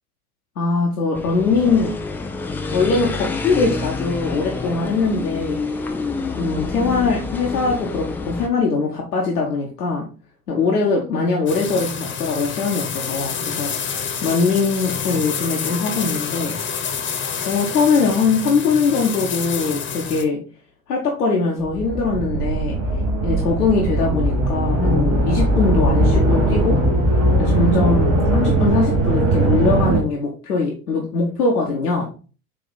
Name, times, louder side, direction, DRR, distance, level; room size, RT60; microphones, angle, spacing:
voice 1, 0.6-2.0 2.7-5.6 6.4-10.1 10.5-13.7 14.2-16.6 17.5-20.4 20.9-22.8 23.2-26.8 27.4-32.1, left 4 dB, 75° left, -1 dB, 1.3 m, -21 dB
sound 1, 1.1-8.5, left 3 dB, 5° left, 0.3 m, -28 dB
sound 2, 11.5-20.2, left 7 dB, 25° left, 1.1 m, -28 dB
sound 3, 21.6-30.0, right 1 dB, 45° right, 2.8 m, -19 dB
8.2 x 2.9 x 4.0 m, 0.37 s
figure-of-eight pair, 75°, 46 cm